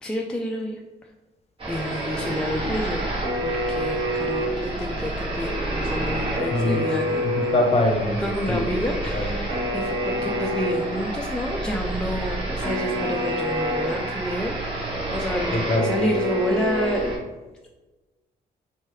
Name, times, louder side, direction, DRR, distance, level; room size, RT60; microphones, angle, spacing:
voice 1, 0.0-0.8 1.7-3.0 3.4-7.3 8.2-17.1, equal, 5° left, -1 dB, 0.3 m, -29 dB
sound 1, 1.6-17.2, right 1 dB, 30° right, 1.2 m, -27 dB
voice 2, 6.5-6.9 7.4-8.2 8.5-8.7 9.1-9.4 15.5-15.9, left 2 dB, 35° left, 1 dB, 0.8 m, -23 dB
3.0 x 2.3 x 3.0 m, 1.1 s
supercardioid pair, 60°, 18 cm